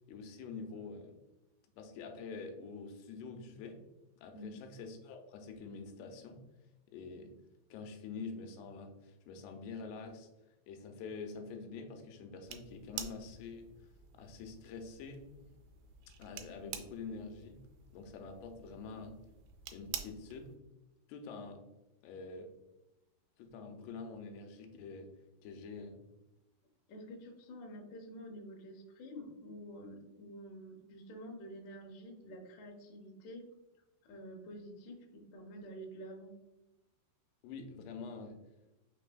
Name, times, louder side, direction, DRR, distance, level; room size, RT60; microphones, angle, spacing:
voice 1, 0.1-1.2 1.8-3.8 4.2-6.4 6.9-7.3 7.7-10.3 10.7-13.7 14.1-15.3 16.2-17.6 17.9-19.3 19.7-20.6 21.1-21.6 22.0-22.5 23.4-25.1 25.4-26.0 37.4-38.4, left 4 dB, 85° left, 4 dB, 2.7 m, -46 dB
sound 1, 12.5-20.6, right 9 dB, 85° right, 2.2 m, -49 dB
voice 2, 26.9-33.4 34.0-36.3, equal, 70° left, 0 dB, 2.0 m, -49 dB
6.2 x 3.3 x 2.2 m, 1.0 s
omnidirectional pair, 4.7 m